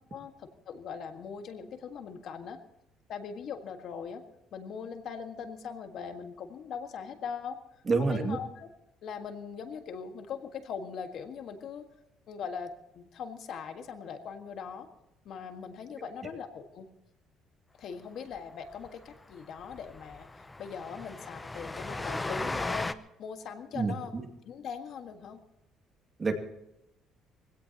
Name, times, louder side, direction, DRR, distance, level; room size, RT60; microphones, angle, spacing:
voice 1, 0.1-2.6 3.1-4.2 4.5-7.6 8.0-8.7 9.0-11.8 12.3-14.9 15.2-16.9 17.8-24.1 24.4-25.4, left 6 dB, 60° left, 6 dB, 1.7 m, -40 dB
voice 2, 7.9-8.4 23.7-24.0 26.2-26.3, right 4 dB, 30° right, 3 dB, 2.4 m, -27 dB
Train, 18.4-18.5 18.7-18.9 19.1-19.2 19.6-22.9, left 2 dB, 15° left, 0.7 m, -36 dB
23.0 x 17.0 x 3.0 m, 0.87 s
cardioid pair, 125°, 0 cm